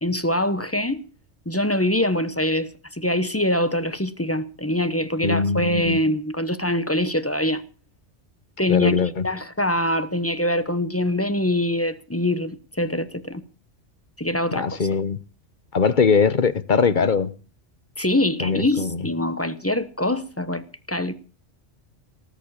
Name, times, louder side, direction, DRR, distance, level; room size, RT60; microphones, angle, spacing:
voice 1, 0.0-1.1 1.5-7.6 8.6-13.4 14.2-14.9 18.0-21.1, left 1 dB, 15° left, 0.9 m, -24 dB
voice 2, 5.2-6.0 8.7-9.3 14.5-15.2 15.7-17.3 18.4-19.0, left 5 dB, 45° left, 1.0 m, -21 dB
19.0 x 7.1 x 8.7 m
omnidirectional pair, 1.2 m